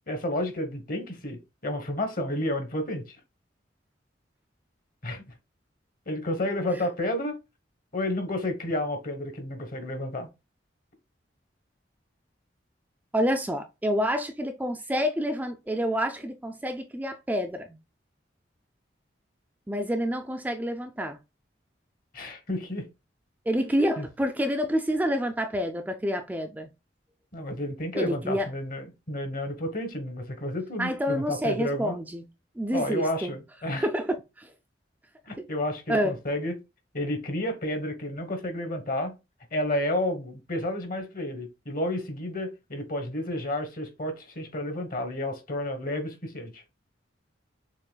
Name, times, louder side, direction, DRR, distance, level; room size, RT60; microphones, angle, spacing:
voice 1, 0.1-3.2 5.0-5.2 6.1-7.4 7.9-10.3 22.1-22.9 24.0-24.1 27.3-32.0 32.7-33.9 35.3-36.5 36.9-39.1 39.5-46.6, left 1 dB, 50° left, 1.1 m, -31 dB
voice 2, 13.1-17.8 19.7-21.2 23.5-26.7 27.9-28.5 30.8-32.3 32.6-33.3 33.8-34.5 35.4-35.5 35.9-36.2, equal, 10° right, 0.4 m, -28 dB
6.5 x 3.1 x 2.2 m
head